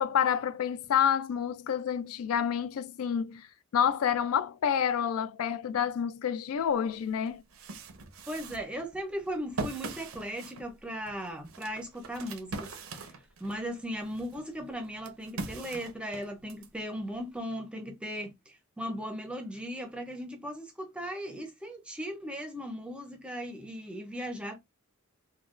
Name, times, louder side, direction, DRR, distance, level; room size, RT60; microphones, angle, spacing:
voice 1, 0.0-3.5 3.7-7.4, left 8 dB, 85° left, 0.4 m, -28 dB
sound 1, 6.7-6.8 7.3-13.6 14.1-16.7, right 3 dB, 75° right, 0.6 m, -41 dB
voice 2, 8.3-12.8 13.4-24.6, equal, 5° right, 0.5 m, -37 dB
3.6 x 2.2 x 2.4 m
head